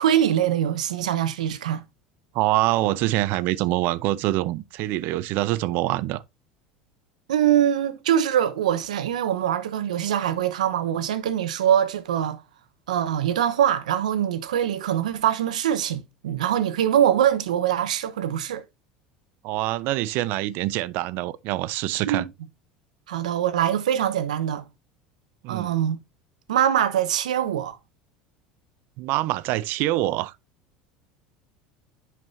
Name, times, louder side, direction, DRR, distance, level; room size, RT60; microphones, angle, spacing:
voice 1, 0.0-1.8 7.3-12.4 12.9-18.6 22.1-22.2 23.1-24.6 25.5-26.0 26.5-27.8, right 10 dB, 85° right, 1.0 m, -23 dB
voice 2, 2.3-6.2 19.4-22.3 25.4-25.8 29.0-30.3, right 16 dB, 60° right, 0.6 m, -25 dB
10.5 x 6.0 x 2.6 m
hypercardioid pair, 85°, 4 cm